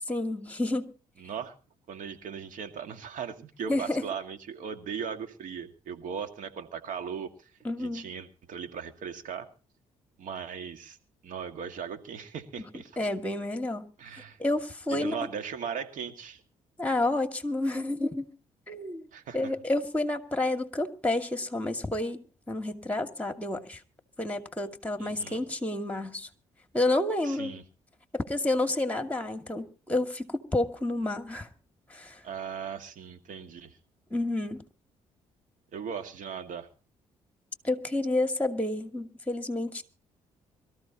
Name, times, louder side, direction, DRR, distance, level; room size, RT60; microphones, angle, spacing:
voice 1, 0.1-0.9 3.7-4.0 7.6-8.0 13.0-13.9 14.4-15.2 16.8-18.3 18.7-19.1 19.3-23.8 24.2-26.3 26.7-27.5 28.1-31.5 31.9-32.2 34.1-34.6 37.6-39.8, left 2 dB, 10° left, 6 dB, 2.4 m, -30 dB
voice 2, 1.2-1.5 1.9-7.5 7.8-9.5 10.2-11.0 11.2-13.0 14.0-14.4 14.9-16.4 19.1-19.5 25.0-25.4 27.2-27.6 32.2-33.8 35.7-36.7, right 7 dB, 65° right, 8 dB, 2.1 m, -38 dB
24.5 x 14.0 x 3.0 m, 0.36 s
hypercardioid pair, 55°, 14 cm